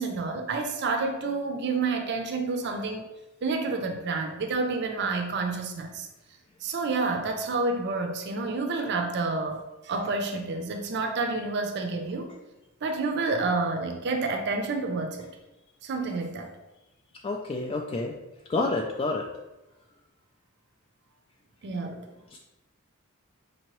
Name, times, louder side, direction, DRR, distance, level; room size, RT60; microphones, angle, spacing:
voice 1, 0.0-3.0 3.4-6.1 6.6-12.3 12.8-15.3 15.8-16.5 21.6-22.1, right 3 dB, 55° right, 4 dB, 0.5 m, -29 dB
voice 2, 17.2-18.1 18.5-19.3 22.3-22.4, left 3 dB, 25° left, 0 dB, 0.3 m, -28 dB
5.2 x 2.8 x 3.0 m, 1.0 s
head